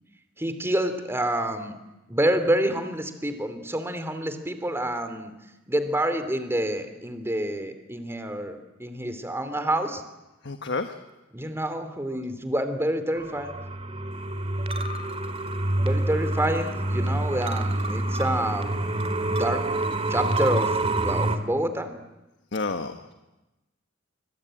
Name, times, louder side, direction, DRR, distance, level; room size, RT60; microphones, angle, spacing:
voice 1, 0.4-1.7 2.1-5.3 5.7-10.0 11.3-13.5 15.8-18.7 19.3-19.6 20.1-21.9, right 1 dB, 15° right, 9 dB, 2.8 m, -28 dB
voice 2, 10.4-11.0 22.5-23.1, left 3 dB, 60° left, 7 dB, 1.4 m, -30 dB
sound 1, 13.1-21.4, right 2 dB, 30° right, 2.2 m, -27 dB
25.5 x 25.0 x 9.0 m, 1.0 s
head